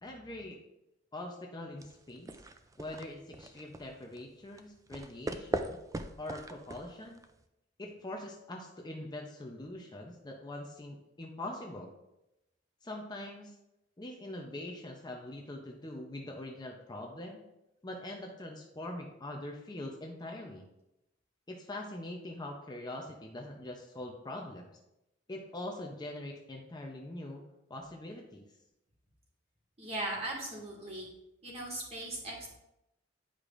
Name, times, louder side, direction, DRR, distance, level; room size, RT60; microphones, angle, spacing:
voice 1, 0.0-0.6 1.1-2.4 2.8-5.8 6.2-7.2 7.8-11.9 12.8-13.5 14.0-17.4 17.8-20.6 21.5-24.7 25.3-27.4 27.7-28.4, left 1 dB, 20° left, 1 dB, 0.7 m, -43 dB
sound 1, 1.8-7.4, right 2 dB, 20° right, 0.3 m, -41 dB
voice 2, 29.8-31.1 31.4-32.5, right 1 dB, 35° right, -4 dB, 1.9 m, -38 dB
10.0 x 4.9 x 2.5 m, 0.89 s
head